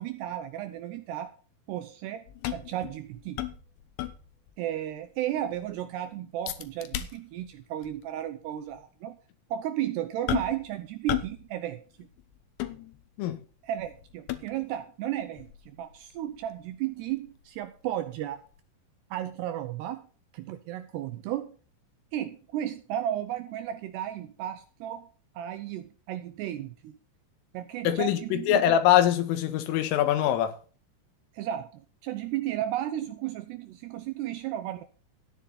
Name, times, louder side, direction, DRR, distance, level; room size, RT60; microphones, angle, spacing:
voice 1, 0.0-1.3 1.7-2.2 2.5-3.4 4.6-9.2 9.5-12.1 13.6-15.5 15.8-18.4 19.1-20.0 20.3-21.6 22.1-25.1 25.4-26.9 27.5-28.6 31.3-34.8, right 12 dB, 80° right, 2.5 m, -34 dB
sound 1, 2.3-4.6 4.9-5.0 5.4-5.8 6.5-7.5 7.8-8.0 8.7-8.8 10.3-10.7 11.1-11.5 11.7-13.3 13.8-14.8 15.4-18.2 18.5-18.6, left 13 dB, 70° left, 3.1 m, -36 dB
voice 2, 27.9-30.5, left 11 dB, 90° left, 4.1 m, -23 dB
14.0 x 9.9 x 4.1 m
omnidirectional pair, 5.6 m